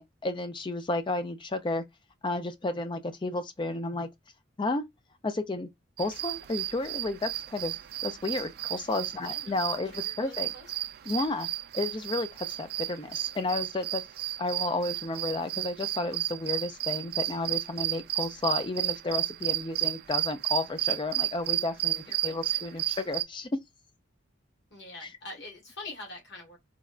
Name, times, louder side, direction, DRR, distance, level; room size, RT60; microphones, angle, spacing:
voice 1, 0.0-1.8 2.2-4.1 4.6-4.9 5.2-5.7 6.0-7.8 8.0-10.5 11.1-11.5 11.7-14.0 14.4-23.6, left 2 dB, 25° left, 0.4 m, -32 dB
sound 1, 6.0-23.2, right 14 dB, 50° right, 0.3 m, -32 dB
voice 2, 9.2-9.6 9.9-10.7 22.0-22.8 24.7-26.6, left 2 dB, 55° left, 1.4 m, -45 dB
3.9 x 2.2 x 2.3 m
head